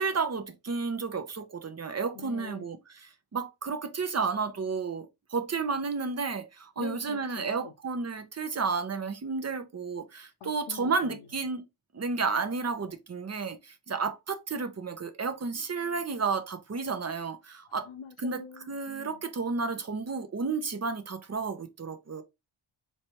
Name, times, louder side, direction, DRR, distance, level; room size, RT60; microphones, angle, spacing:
voice 1, 0.0-2.8 3.0-11.6 11.9-17.9 18.2-22.2, right 4 dB, 35° right, 0.6 m, -32 dB
voice 2, 2.1-2.7 6.8-7.7 10.4-11.3 17.7-19.2, left 7 dB, 75° left, 0.7 m, -45 dB
4.3 x 3.2 x 2.8 m
wide cardioid pair, 150°, 49 cm